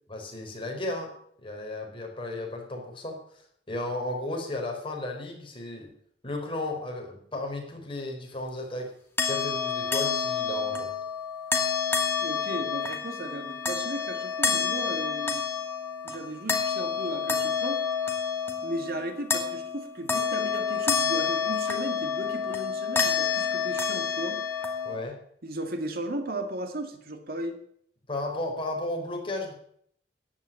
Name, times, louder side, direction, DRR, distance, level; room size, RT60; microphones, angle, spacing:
voice 1, 0.1-1.1 1.4-3.2 3.7-5.9 6.2-8.9 9.2-10.9 24.8-25.2 28.1-29.5, left 2 dB, 30° left, 1 dB, 4.3 m, -34 dB
sound 1, 9.2-25.0, left 5 dB, 15° left, 2.4 m, -29 dB
voice 2, 12.2-15.4 16.0-17.8 18.6-24.4 25.4-27.6, right 1 dB, 60° right, 6 dB, 2.1 m, -35 dB
15.0 x 10.0 x 8.8 m, 0.66 s
head